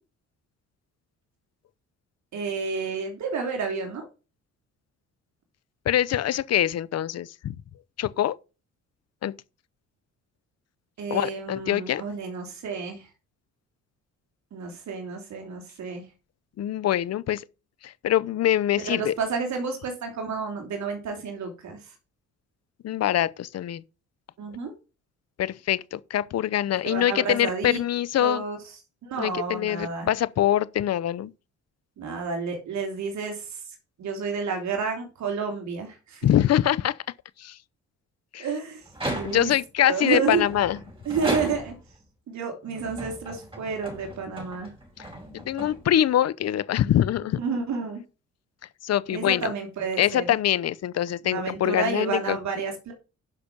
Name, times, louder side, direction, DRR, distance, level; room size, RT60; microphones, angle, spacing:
voice 1, 2.3-4.1 11.0-13.1 14.5-16.0 18.8-21.9 24.4-24.7 26.8-27.8 28.2-28.6 29.0-30.1 32.0-33.6 34.0-36.3 38.4-39.5 39.9-40.4 41.0-41.7 42.3-44.7 47.4-48.0 49.1-50.3 51.3-52.9, right 5 dB, 65° right, 3.1 m, -30 dB
voice 2, 5.9-7.6 8.0-8.4 9.2-9.3 11.1-12.0 16.6-17.4 17.8-19.1 22.8-23.8 25.4-28.4 29.2-31.3 36.2-37.0 37.4-37.6 38.3-38.5 39.2-40.8 45.0-45.1 45.3-47.4 48.8-49.5 50.0-52.4, left 11 dB, 55° left, 0.7 m, -24 dB
sound 1, 38.9-39.7 40.3-41.9 42.6-46.2, right 1 dB, 15° right, 5.0 m, -36 dB
10.5 x 6.0 x 5.2 m
cardioid pair, 90°, 30 cm